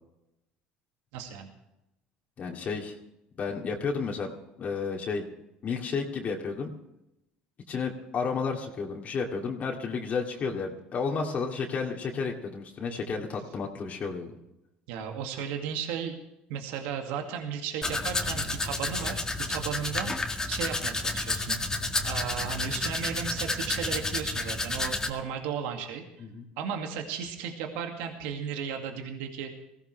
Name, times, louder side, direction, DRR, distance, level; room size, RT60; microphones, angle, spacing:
voice 1, 1.1-1.5 14.9-16.2 16.5-20.2 20.5-21.6 22.0-26.0 26.6-29.5, right 7 dB, 80° right, 4 dB, 2.2 m, -35 dB
voice 2, 2.4-2.9 3.4-4.3 4.6-5.2 5.6-6.7 7.7-14.3 26.2-26.4, left 5 dB, 45° left, 0 dB, 2.4 m, -32 dB
Domestic sounds home sounds, 17.8-25.1, left 2 dB, 15° left, 2.0 m, -31 dB
19.5 x 16.0 x 3.4 m, 0.89 s
supercardioid pair, 90°, 4 cm